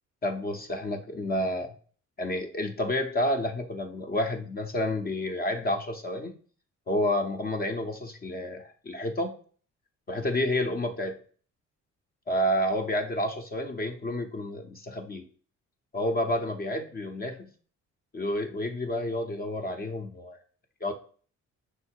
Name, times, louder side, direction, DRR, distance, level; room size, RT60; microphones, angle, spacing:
voice 1, 0.2-1.7 2.2-6.4 6.9-9.3 10.1-11.2 12.3-15.3 15.9-17.5 18.1-20.4 20.8-20.9, left 1 dB, 30° left, 4 dB, 0.6 m, -30 dB
5.6 x 2.0 x 4.4 m, 0.43 s
cardioid pair, 90°, 30 cm